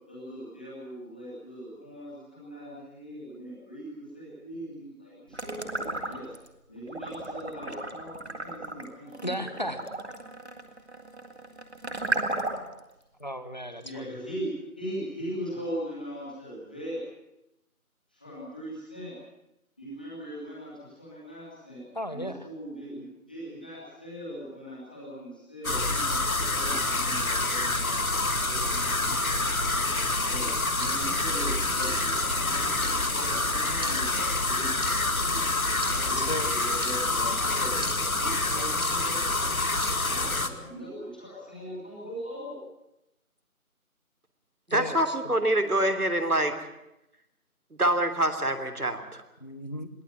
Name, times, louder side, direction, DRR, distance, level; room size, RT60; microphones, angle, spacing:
voice 1, 0.1-6.3 6.7-9.6 13.8-14.5 14.8-17.0 18.1-19.2 19.8-21.8 22.1-23.0 23.3-28.1 28.4-29.5 30.1-35.5 35.8-39.5 40.0-42.6, equal, 5° left, -8 dB, 2.4 m, -40 dB
sound 1, 5.3-6.5 6.9-12.8, right 2 dB, 45° right, 2.3 m, -34 dB
voice 2, 9.2-9.8 13.2-14.1 21.9-22.5 36.0-36.5 44.7-45.1 49.4-49.9, equal, 30° left, 10 dB, 1.3 m, -35 dB
sound 2, 25.6-40.5, left 2 dB, 65° left, 2.0 m, -27 dB
sound 3, 30.5-40.7, right 1 dB, 15° right, 2.9 m, -44 dB
voice 3, 44.7-46.5 47.8-49.2, right 1 dB, 80° right, 6 dB, 3.3 m, -25 dB
22.0 x 16.0 x 9.1 m, 0.87 s
figure-of-eight pair, 170°, 44 cm